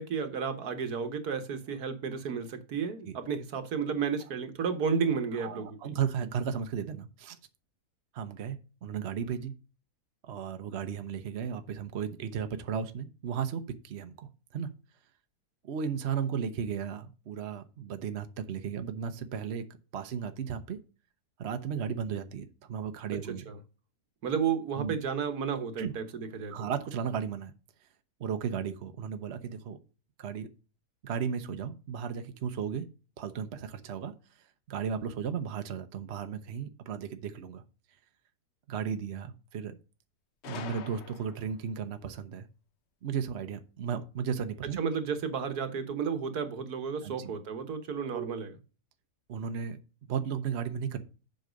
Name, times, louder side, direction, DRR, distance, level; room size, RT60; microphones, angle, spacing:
voice 1, 0.0-6.0 23.5-23.6 24.2-26.7 44.8-48.5, right 6 dB, 70° right, 1.6 m, -32 dB
voice 2, 5.3-7.4 8.1-9.5 10.2-14.7 15.6-19.7 19.9-20.8 21.4-23.5 24.8-25.0 25.8-25.9 26.5-27.5 28.2-29.8 30.2-30.5 31.0-32.9 33.2-34.1 34.7-37.6 38.7-39.8 40.5-42.5 43.0-44.8 47.0-47.3 48.1-48.3 49.3-49.8 50.1-51.0, right 7 dB, 50° right, 0.9 m, -35 dB
Gunshot gunfire, 40.4-41.7, left 8 dB, 55° left, 0.8 m, -44 dB
7.8 x 5.3 x 5.0 m
omnidirectional pair, 1.7 m